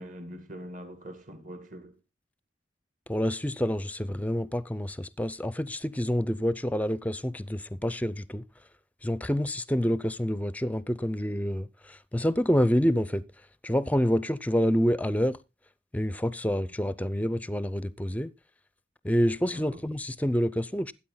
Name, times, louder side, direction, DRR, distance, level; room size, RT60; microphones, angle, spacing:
voice 1, 0.0-2.0 19.5-19.8, equal, 45° right, 2.2 m, -43 dB
voice 2, 3.1-8.4 9.0-13.2 13.6-15.4 15.9-18.3 19.0-20.9, equal, 10° left, 0.5 m, -27 dB
13.0 x 8.9 x 3.9 m
head